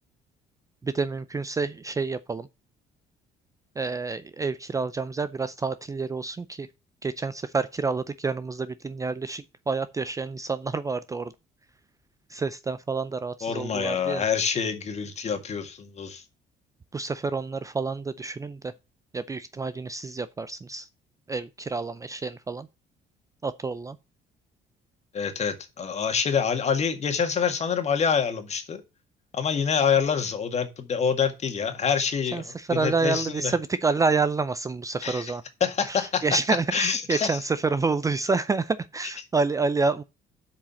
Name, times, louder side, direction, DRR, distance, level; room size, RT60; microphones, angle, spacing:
voice 1, 0.8-2.5 3.8-6.7 7.0-11.3 12.3-14.2 16.9-18.6 19.1-20.8 21.3-22.7 23.4-24.0 32.3-35.4 35.9-40.0, right 4 dB, 20° right, 0.5 m, -28 dB
voice 2, 13.4-16.2 25.1-28.8 29.3-33.6 35.0-35.3 35.6-36.2 36.7-37.4, left 6 dB, 40° left, 1.9 m, -26 dB
7.2 x 4.9 x 6.9 m
cardioid pair, 110°, 17 cm